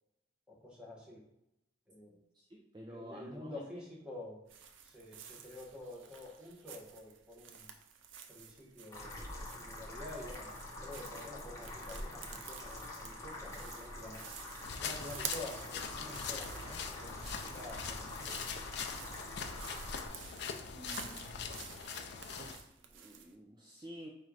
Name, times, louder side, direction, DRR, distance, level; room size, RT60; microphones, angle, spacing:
voice 1, 0.5-1.2 1.9-2.2 2.9-4.4 4.8-7.7 8.3-10.5 10.8-14.2 14.8-18.5, left 2 dB, 5° right, -3 dB, 1.2 m, -49 dB
voice 2, 2.3-3.7 20.7-21.6 22.4-24.1, equal, 25° right, 0 dB, 0.4 m, -50 dB
sound 1, 4.5-23.3, right 7 dB, 80° right, 0.5 m, -51 dB
sound 2, 8.9-20.1, left 1 dB, 15° left, 0.9 m, -46 dB
sound 3, 14.6-22.6, left 6 dB, 60° left, 0.5 m, -42 dB
4.3 x 2.5 x 4.7 m, 0.86 s
head